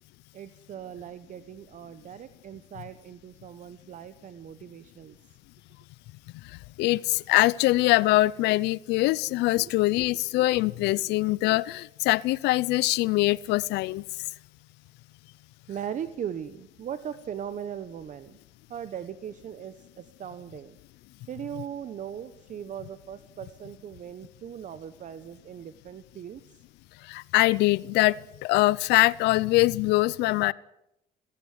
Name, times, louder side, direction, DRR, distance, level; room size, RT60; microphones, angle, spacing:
voice 1, 0.3-5.2 9.6-10.1 11.0-11.2 15.7-18.4 18.7-20.8 21.3-26.6, right 9 dB, 50° right, 12 dB, 1.1 m, -39 dB
voice 2, 6.8-14.0 27.1-28.1 28.4-30.5, left 19 dB, 90° left, 22 dB, 0.7 m, -23 dB
17.5 x 17.0 x 9.7 m, 0.83 s
cardioid pair, 110°, 17 cm